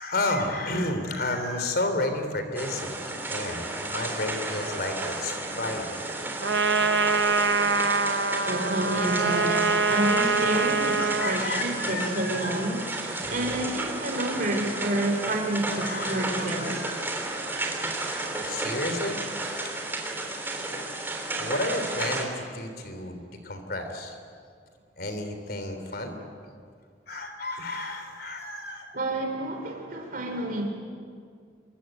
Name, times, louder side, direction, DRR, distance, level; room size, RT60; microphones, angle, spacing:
voice 1, 0.0-6.0 11.0-12.5 13.2-13.7 15.7-17.1 17.8-18.0 18.4-19.2 19.6-19.8 20.6-24.2 25.0-26.1 27.1-28.9, left 2 dB, 55° left, 6 dB, 3.7 m, -32 dB
sound 1, 2.5-22.2, right 2 dB, 10° right, 3.4 m, -33 dB
Trumpet, 6.4-11.4, right 3 dB, 75° right, 1.1 m, -24 dB
voice 2, 8.4-16.8 28.9-30.6, right 1 dB, 50° right, 2 dB, 3.5 m, -29 dB
27.0 x 23.5 x 9.2 m, 2.2 s
head